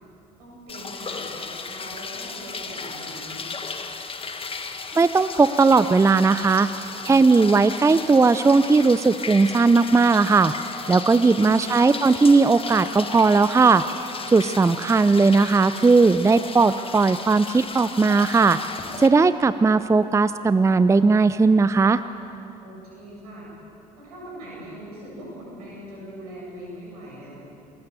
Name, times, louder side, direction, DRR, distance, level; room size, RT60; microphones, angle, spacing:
voice 1, 0.4-3.5 10.9-11.7 22.6-23.5 24.0-27.3, equal, 75° right, -4 dB, 7.4 m, -41 dB
sound 1, 0.7-19.1, left 4 dB, 25° left, 1.9 m, -35 dB
voice 2, 5.0-6.7 7.0-10.5 10.9-13.8 14.3-18.6 19.0-22.0, right 4 dB, 15° right, 14 dB, 0.6 m, -18 dB
28.5 x 20.0 x 7.0 m, 2.9 s
figure-of-eight pair, 50°, 20 cm